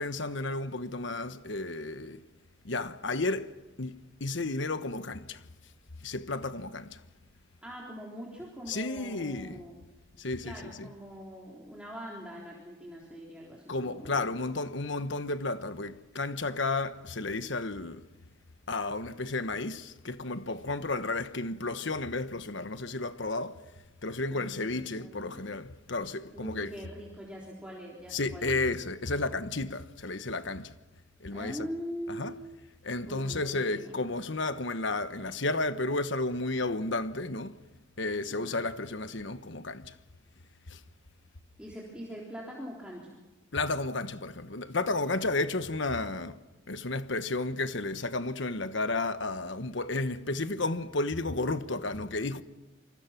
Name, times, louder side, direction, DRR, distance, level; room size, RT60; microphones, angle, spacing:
voice 1, 0.0-2.2 2.6-5.4 6.0-7.0 8.7-9.6 10.2-10.9 13.7-18.0 18.7-23.7 24.0-26.7 28.1-30.7 31.2-31.6 32.1-32.3 32.8-37.6 38.0-40.0 40.7-40.8 43.5-46.4 46.7-52.4, left 2 dB, 65° left, 1.2 m, -32 dB
voice 2, 7.6-9.8 10.4-14.2 24.3-25.4 26.3-28.6 31.3-32.4 33.1-34.0 38.3-38.6 41.6-43.2, equal, 5° right, 3.7 m, -43 dB
27.5 x 25.5 x 6.0 m
head